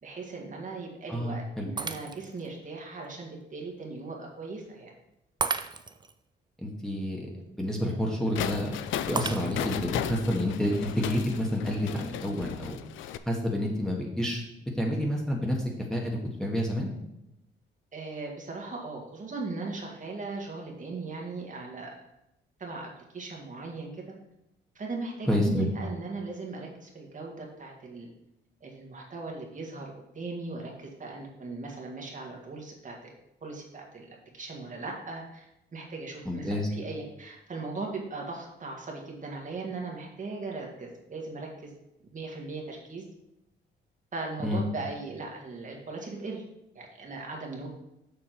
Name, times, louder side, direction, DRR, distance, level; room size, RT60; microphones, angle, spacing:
voice 1, 0.0-4.9 17.9-21.9 22.6-24.0 24.8-28.1 28.6-33.1 33.4-41.7 42.1-43.0 44.1-46.4 46.7-47.7, right 3 dB, 40° right, 0 dB, 1.9 m, -38 dB
voice 2, 1.1-1.7 6.6-12.8 13.2-14.4 14.7-15.6 15.9-16.9 25.3-25.7 36.2-36.7 44.4-44.6, left 1 dB, 5° left, -2 dB, 1.7 m, -29 dB
Shatter, 1.8-2.5 3.0-3.1 5.4-6.1 9.2-9.9, right 4 dB, 20° right, 0.5 m, -33 dB
sound 1, 8.3-13.2, left 10 dB, 75° left, 0.5 m, -35 dB
7.1 x 6.2 x 4.6 m, 0.87 s
cardioid pair, 90°, 20 cm